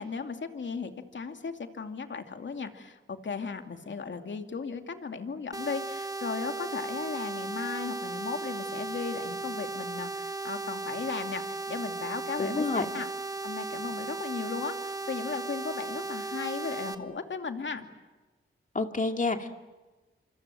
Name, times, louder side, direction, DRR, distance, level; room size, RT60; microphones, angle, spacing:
voice 1, 0.0-13.1 13.4-17.9, left 5 dB, 60° left, 6 dB, 2.6 m, -36 dB
sound 1, 5.5-16.9, right 3 dB, 15° right, 1.8 m, -36 dB
voice 2, 12.4-12.9 18.7-19.5, left 3 dB, 40° left, 5 dB, 2.4 m, -28 dB
27.0 x 26.0 x 7.7 m, 1.2 s
cardioid pair, 80°, 21 cm